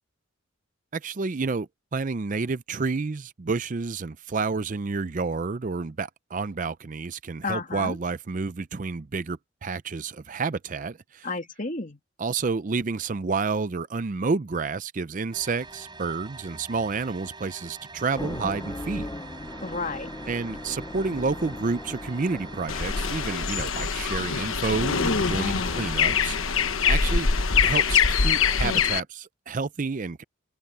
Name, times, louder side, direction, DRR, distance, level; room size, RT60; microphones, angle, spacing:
voice 1, 0.9-11.3 12.2-19.1 20.3-27.3 27.6-30.2, right 4 dB, 40° right, 0.5 m, -30 dB
voice 2, 7.4-8.0 11.2-12.0 19.6-20.1 25.4-26.0, left 3 dB, 40° left, 2.7 m, -32 dB
sound 1, 15.3-28.8, right 3 dB, 20° right, 5.4 m, -44 dB
sound 2, 18.1-23.7, left 1 dB, 15° left, 0.7 m, -38 dB
sound 3, 22.7-29.0, left 6 dB, 70° left, 1.1 m, -24 dB
head